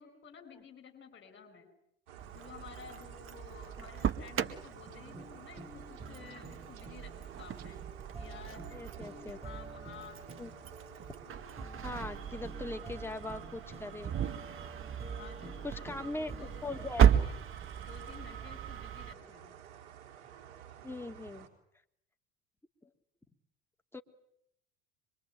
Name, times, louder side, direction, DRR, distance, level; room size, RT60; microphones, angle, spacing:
voice 1, 0.0-1.7 2.3-7.8 8.2-8.8 9.3-10.2 15.1-16.5 16.9-17.3 17.7-19.6, left 6 dB, 35° left, 6 dB, 6.6 m, -52 dB
sound 1, 2.1-21.5, right 9 dB, 65° right, 4.4 m, -52 dB
Engine starting, 2.2-19.1, right 9 dB, 35° right, 2.0 m, -35 dB
sound 2, 4.9-16.8, right 2 dB, 15° right, 5.6 m, -50 dB
voice 2, 8.7-9.4 10.4-10.7 11.8-14.1 15.6-17.1 20.8-21.5 22.8-22.9 23.9-24.0, left 2 dB, 5° left, 5 dB, 2.6 m, -41 dB
25.5 x 23.5 x 9.4 m, 0.74 s
hypercardioid pair, 75°, 34 cm